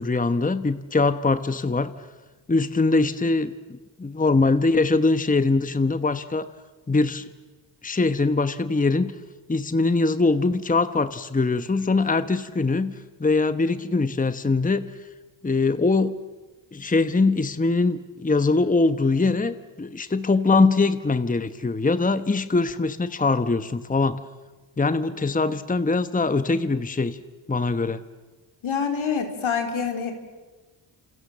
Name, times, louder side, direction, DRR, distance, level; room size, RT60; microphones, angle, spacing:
voice 1, 0.0-1.9 2.5-6.5 6.9-7.2 7.8-9.1 9.5-12.9 13.2-14.9 15.4-16.2 16.7-24.2 24.8-27.2 27.5-28.0, left 3 dB, 15° left, 11 dB, 1.1 m, -22 dB
voice 2, 28.6-30.1, left 6 dB, 80° left, 4 dB, 4.2 m, -26 dB
28.5 x 28.0 x 7.5 m, 1.2 s
cardioid pair, 85°, 48 cm